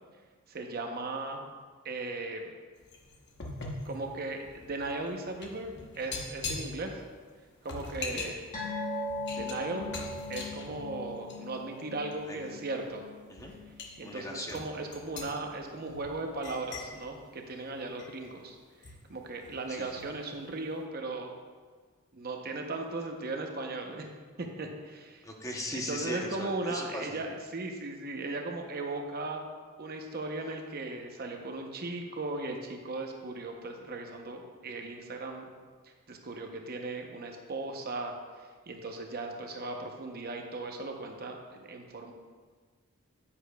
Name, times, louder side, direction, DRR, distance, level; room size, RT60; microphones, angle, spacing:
voice 1, 0.5-1.5 1.8-2.5 3.8-7.0 7.6-8.4 9.3-9.9 10.3-13.0 14.0-21.3 22.1-24.1 24.4-25.2 25.7-29.5 29.8-35.5 35.8-42.1, right 2 dB, 45° right, 3 dB, 0.7 m, -37 dB
sound 1, 2.8-11.6 12.0-12.2 12.9-13.0 13.4-13.9 14.5-18.4 18.8-20.2 20.5-20.7, left 3 dB, 50° left, 1.0 m, -42 dB
sound 2, 8.5-15.3 15.6-15.8 16.2-16.3, left 2 dB, 35° left, 1.6 m, -40 dB
voice 2, 14.0-14.6 19.7-20.0 25.2-27.2, left 1 dB, 15° left, 0 dB, 0.8 m, -39 dB
9.6 x 8.6 x 2.3 m, 1.5 s
head